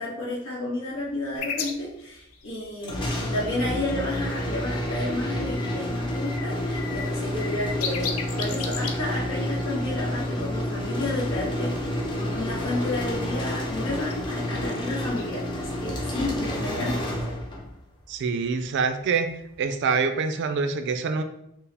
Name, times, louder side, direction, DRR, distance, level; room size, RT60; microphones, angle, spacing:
voice 1, 0.0-17.0, left 1 dB, 60° left, -6 dB, 1.2 m, -31 dB
sound 1, 1.4-5.0 5.4-5.8 6.1-11.3 13.8-14.1 14.5-15.2, left 6 dB, 75° left, 0.5 m, -37 dB
sound 2, 2.8-17.8, left 1 dB, 20° left, 0.6 m, -29 dB
voice 2, 18.1-19.3 19.6-21.2, right 5 dB, 55° right, 8 dB, 0.3 m, -25 dB
4.5 x 2.0 x 3.3 m, 0.78 s
head